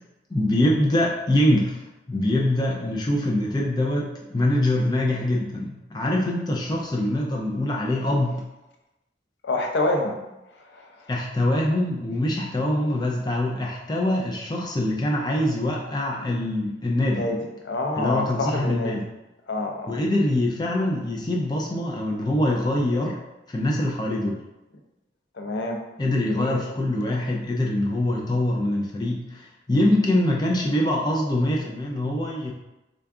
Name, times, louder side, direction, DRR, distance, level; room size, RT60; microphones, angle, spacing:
voice 1, 0.3-1.8 2.1-8.4 11.1-17.2 18.0-19.0 19.9-23.2 23.5-24.4 26.0-32.5, left 1 dB, 20° left, -2 dB, 0.3 m, -24 dB
voice 2, 9.4-10.2 10.5-11.1 17.0-18.9 19.5-20.0 25.3-25.8 26.2-26.7, left 2 dB, 75° left, 2 dB, 0.5 m, -28 dB
3.7 x 2.4 x 3.4 m, 0.98 s
head